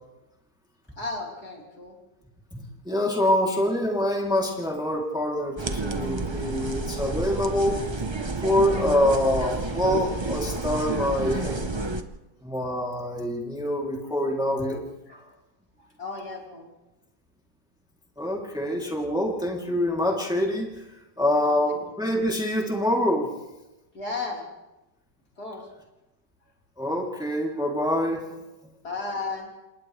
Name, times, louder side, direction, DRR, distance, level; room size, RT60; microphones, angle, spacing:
voice 1, 1.0-2.0 3.2-3.3 5.7-6.2 6.5-7.2 10.5-10.7 15.1-15.3 16.0-16.7 21.4-21.8 22.1-22.2 23.9-24.4 25.4-25.7 28.8-29.5, left 3 dB, 55° left, -2 dB, 4.7 m, -36 dB
voice 2, 2.8-7.8 8.4-11.6 12.4-14.8 18.2-20.7 21.2-23.3 26.8-28.2, left 1 dB, ahead, -2 dB, 2.9 m, -25 dB
sound 1, 5.6-12.0, right 3 dB, 25° right, 0.6 m, -30 dB
29.5 x 27.5 x 3.3 m, 1.0 s
omnidirectional pair, 2.0 m